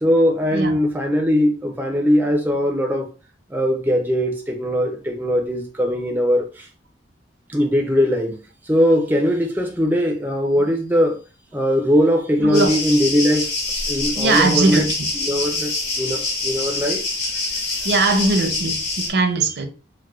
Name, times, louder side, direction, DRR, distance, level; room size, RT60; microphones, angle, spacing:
voice 1, 0.0-3.1 3.5-6.7 7.5-8.4 8.7-11.2 11.5-13.5 13.9-14.9 15.2-15.7 16.0-17.9, equal, 10° right, 0.4 m, -20 dB
voice 2, 0.5-0.8 12.4-12.8 14.2-15.1 17.8-19.7, right 3 dB, 60° right, 0.6 m, -20 dB
sound 1, 12.5-19.1, left 3 dB, 55° left, 1.7 m, -25 dB
4.6 x 2.1 x 2.3 m
head